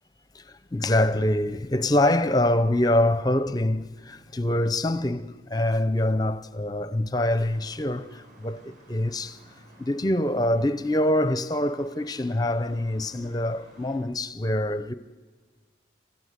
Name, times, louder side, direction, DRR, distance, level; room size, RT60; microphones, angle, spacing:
voice 1, 0.3-9.4 9.8-14.9, left 1 dB, 20° left, 0.6 m, -25 dB
sound 1, 7.1-14.0, right 1 dB, 45° right, 8.0 m, -54 dB
27.5 x 15.0 x 8.1 m
head